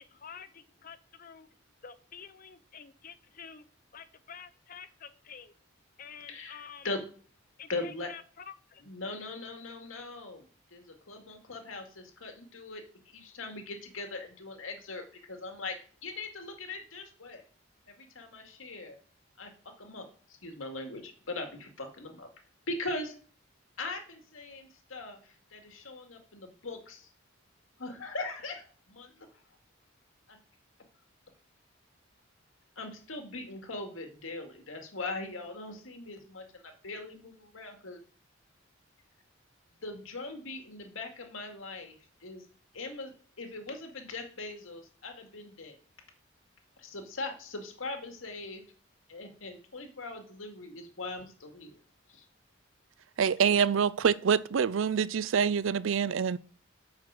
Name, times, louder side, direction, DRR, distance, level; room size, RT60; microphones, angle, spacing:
voice 1, 0.0-3.6 3.9-5.5 6.0-6.9 7.6-8.8, left 7 dB, 45° left, 0.6 m, -49 dB
voice 2, 6.3-7.0 7.7-8.1 8.8-10.5 10.7-15.0 15.3-15.8 16.0-17.4 17.9-18.9 19.4-19.5 19.8-22.3 22.7-23.1 23.8-27.1 27.8-29.3 30.3-30.4 32.8-38.0 39.8-42.0 42.2-42.5 42.7-45.8 46.8-48.6 49.1-51.7 52.1-52.2, left 2 dB, 90° left, 2.3 m, -40 dB
voice 3, 53.2-56.4, right 7 dB, 75° right, 0.4 m, -26 dB
7.3 x 6.2 x 7.6 m
head